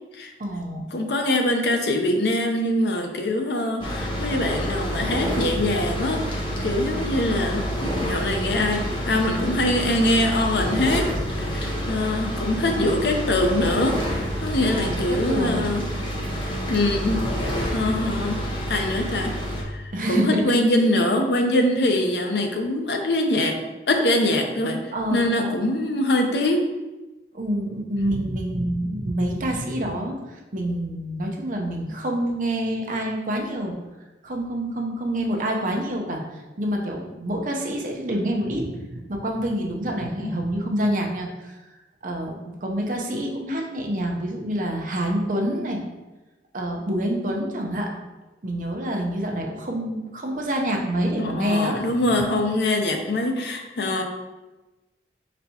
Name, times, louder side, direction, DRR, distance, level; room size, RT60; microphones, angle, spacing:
voice 1, 0.4-0.9 14.7-15.6 19.9-20.5 24.9-25.6 27.3-33.8 34.2-41.6 42.0-45.8 46.5-47.9 48.4-51.8 52.1-52.2, right 1 dB, 45° right, 1 dB, 0.6 m, -27 dB
voice 2, 0.9-6.3 6.6-7.7 8.0-11.1 11.4-16.1 16.7-18.4 18.7-19.3 19.6-23.6 23.9-24.8 25.1-26.7 40.2-40.4 43.1-43.3 51.2-54.0, left 1 dB, 70° left, 4 dB, 0.6 m, -23 dB
sound 1, 3.8-19.6, equal, 30° left, 0.7 m, -28 dB
4.4 x 4.1 x 2.8 m, 1.1 s
head